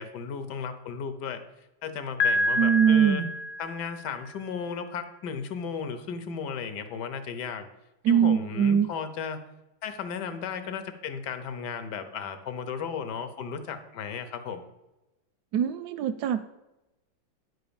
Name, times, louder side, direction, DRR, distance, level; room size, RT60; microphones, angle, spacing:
voice 1, 0.0-1.4 1.8-3.3 3.6-7.7 8.1-9.4 9.8-14.7, left 6 dB, 65° left, 9 dB, 1.4 m, -35 dB
Piano, 2.2-4.1, left 2 dB, 80° left, 0.6 m, -28 dB
voice 2, 2.6-3.3 8.0-8.9 15.5-16.4, right 8 dB, 75° right, 11 dB, 1.0 m, -22 dB
10.5 x 4.4 x 6.9 m, 0.99 s
omnidirectional pair, 2.1 m